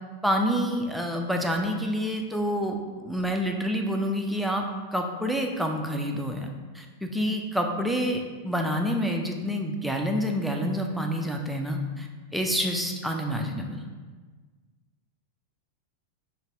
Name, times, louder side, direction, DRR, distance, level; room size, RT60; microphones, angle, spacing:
voice 1, 0.2-4.6 4.9-13.9, equal, ahead, 2 dB, 0.5 m, -28 dB
4.0 x 2.6 x 4.3 m, 1.4 s
figure-of-eight pair, 90°, 0 cm